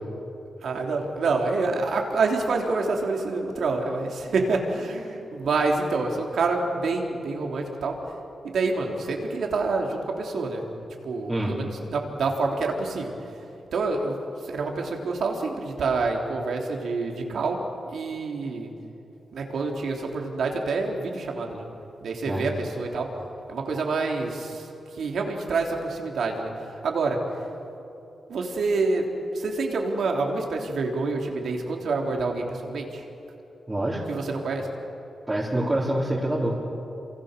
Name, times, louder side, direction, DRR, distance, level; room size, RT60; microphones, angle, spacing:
voice 1, 0.6-8.0 8.4-10.6 11.0-13.2 13.7-14.2 14.4-17.6 17.9-18.7 19.3-21.7 22.0-23.1 23.5-24.7 24.9-27.2 28.3-33.0 34.1-34.7, right 3 dB, 75° right, 1 dB, 3.5 m, -27 dB
voice 2, 33.7-34.1 35.3-36.6, right 1 dB, 15° right, -6 dB, 3.9 m, -26 dB
28.5 x 26.5 x 6.9 m, 2.9 s
wide cardioid pair, 125°, 0 cm